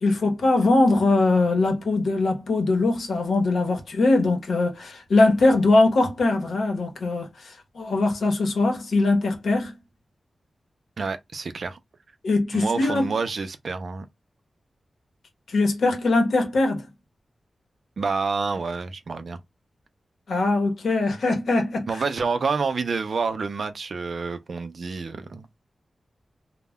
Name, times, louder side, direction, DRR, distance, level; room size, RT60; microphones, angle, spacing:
voice 1, 0.0-9.7 12.2-13.1 15.5-16.9 20.3-22.0, left 2 dB, 85° left, 0.8 m, -21 dB
voice 2, 11.0-11.8 12.5-14.1 18.0-19.4 21.9-25.5, right 4 dB, 60° right, 0.4 m, -28 dB
2.1 x 2.1 x 3.5 m
wide cardioid pair, 155°, 0 cm